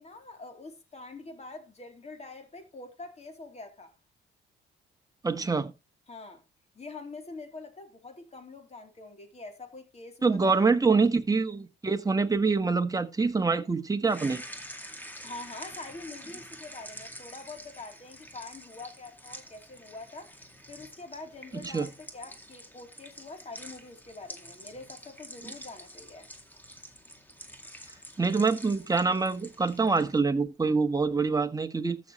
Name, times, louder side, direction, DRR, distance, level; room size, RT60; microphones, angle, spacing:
voice 1, 0.0-3.9 6.1-6.4 6.7-11.0 15.2-20.4 20.7-26.3, left 3 dB, 35° left, 3.3 m, -45 dB
voice 2, 5.2-5.7 10.2-14.4 21.6-21.9 28.2-32.0, right 4 dB, 20° right, 1.3 m, -25 dB
sound 1, 14.1-30.2, equal, 10° left, 2.1 m, -47 dB
14.5 x 6.4 x 3.1 m
cardioid pair, 90°, 20 cm